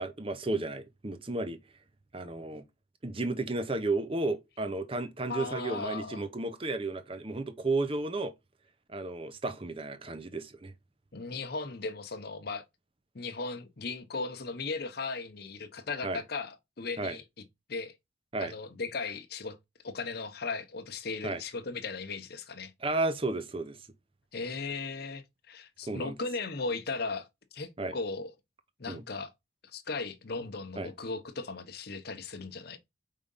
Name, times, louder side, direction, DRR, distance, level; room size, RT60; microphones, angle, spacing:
voice 1, 0.0-1.6 2.1-2.6 3.0-8.3 8.9-10.7 16.0-16.2 17.0-17.2 18.3-18.5 21.2-21.4 22.8-23.8 25.9-26.2 27.8-28.0 28.9-29.0 30.8-30.9, right 2 dB, 25° right, 0.7 m, -33 dB
voice 2, 5.3-6.2 11.1-12.6 13.1-17.2 17.7-17.9 18.4-19.6 19.8-22.7 24.3-27.3 27.5-28.3 28.8-29.3 29.7-32.8, left 4 dB, 50° left, 0.8 m, -37 dB
5.0 x 3.7 x 5.4 m
head